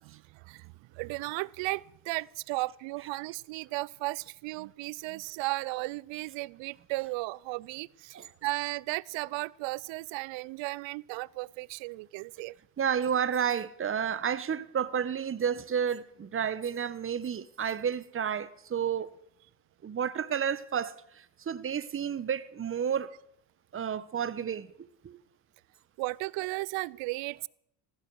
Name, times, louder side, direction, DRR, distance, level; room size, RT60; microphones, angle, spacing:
voice 1, 0.0-12.6 26.0-27.5, right 22 dB, 65° right, 0.6 m, -35 dB
voice 2, 12.8-19.2 19.8-23.1 23.7-24.7 25.0-25.2, right 8 dB, 25° right, 0.9 m, -31 dB
16.0 x 15.5 x 4.7 m
supercardioid pair, 95°, 48 cm